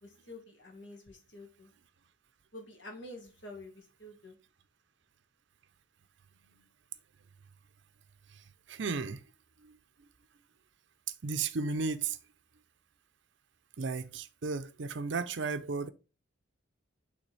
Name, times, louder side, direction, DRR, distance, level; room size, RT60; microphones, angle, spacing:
voice 1, 0.0-1.7 2.5-4.4, left 1 dB, 60° left, 1.7 m, -48 dB
voice 2, 8.7-9.2 11.2-12.2 13.8-15.9, right 4 dB, 60° right, 0.6 m, -34 dB
8.5 x 3.5 x 3.3 m
head